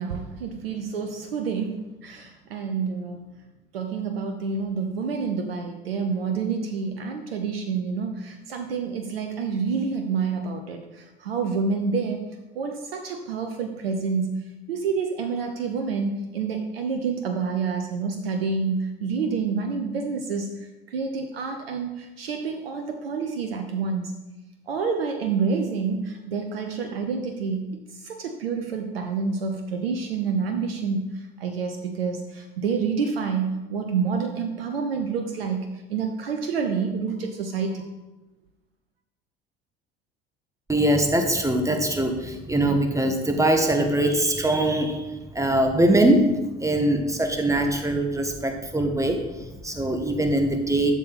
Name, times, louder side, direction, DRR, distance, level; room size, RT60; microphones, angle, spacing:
voice 1, 0.0-3.2 3.7-12.2 12.5-24.1 24.7-37.9, right 5 dB, 80° right, 5 dB, 0.9 m, -28 dB
voice 2, 40.7-50.9, right 1 dB, 10° right, 5 dB, 1.8 m, -22 dB
12.0 x 7.2 x 4.3 m, 1.0 s
hypercardioid pair, 65°, 29 cm